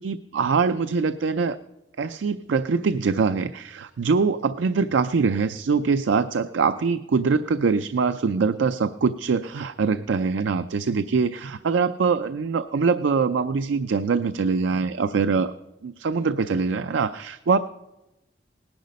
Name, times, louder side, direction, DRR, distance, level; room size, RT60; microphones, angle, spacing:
voice 1, 0.0-1.6 2.0-15.5 15.8-17.6, right 5 dB, 80° right, 12 dB, 0.4 m, -23 dB
19.0 x 10.5 x 5.2 m, 0.99 s
head